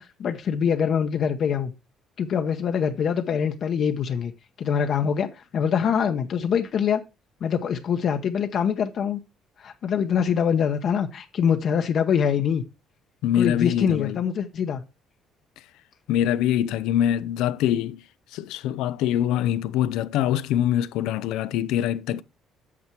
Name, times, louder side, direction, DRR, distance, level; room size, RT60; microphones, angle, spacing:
voice 1, 0.0-1.7 2.2-4.3 4.6-7.0 7.4-9.2 9.6-12.6 13.3-14.8, left 7 dB, 50° left, 0.8 m, -24 dB
voice 2, 13.2-14.2 16.1-18.0 18.3-22.2, left 11 dB, 90° left, 0.5 m, -24 dB
8.5 x 5.9 x 4.6 m
cardioid pair, 130°, 0 cm